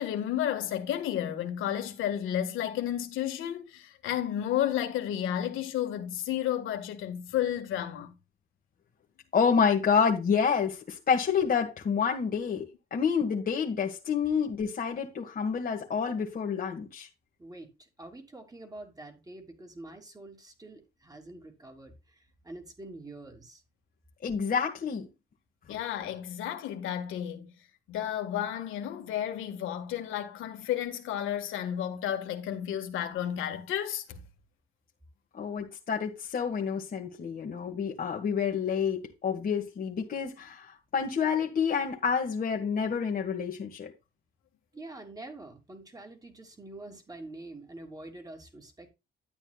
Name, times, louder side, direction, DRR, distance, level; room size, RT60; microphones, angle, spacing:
voice 1, 0.0-8.1 25.7-27.5 27.9-34.2, left 11 dB, 85° left, 1.7 m, -32 dB
voice 2, 9.3-17.1 24.2-25.1 25.7-25.8 35.3-43.9, left 6 dB, 45° left, 1.7 m, -28 dB
voice 3, 18.0-21.9 22.4-23.6 44.7-48.9, right 2 dB, 20° right, 3.0 m, -46 dB
11.5 x 8.8 x 2.4 m
cardioid pair, 90°, 20 cm